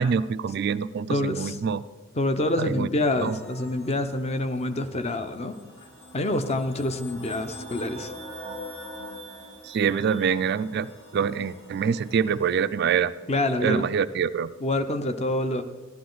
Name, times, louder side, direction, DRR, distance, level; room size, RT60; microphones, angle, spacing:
voice 1, 0.0-1.8 2.6-2.9 3.2-3.4 9.6-13.1 13.6-14.5, right 6 dB, 50° right, 14 dB, 0.3 m, -25 dB
voice 2, 1.1-1.6 2.2-5.5 6.1-8.1 13.3-13.9 14.6-15.6, left 1 dB, 30° left, 9 dB, 0.7 m, -26 dB
sound 1, 3.2-12.9, equal, 90° left, 5.0 m, -44 dB
15.5 x 11.5 x 3.9 m, 1.3 s
head